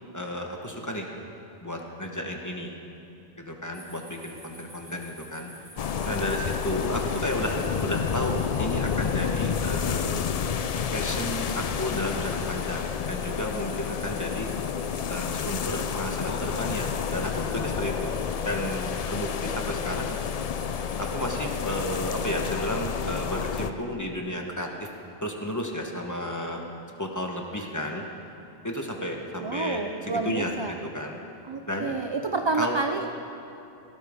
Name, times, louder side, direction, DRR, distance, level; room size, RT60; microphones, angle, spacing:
voice 1, 0.1-1.1 1.6-2.7 3.3-5.5 6.0-10.3 10.9-14.5 15.1-18.2 18.4-20.2 21.0-24.9 25.2-26.6 27.0-28.0 28.6-31.2 31.7-31.9 32.5-32.8, equal, 20° left, 1 dB, 1.0 m, -32 dB
sound 1, 3.7-22.4, right 1 dB, 55° right, 4.0 m, -49 dB
sound 2, 5.8-23.7, left 7 dB, 55° left, 0.4 m, -30 dB
voice 2, 29.4-30.7 31.5-33.1, right 3 dB, 40° right, 5 dB, 0.4 m, -29 dB
17.5 x 12.5 x 3.6 m, 2.9 s
omnidirectional pair, 1.1 m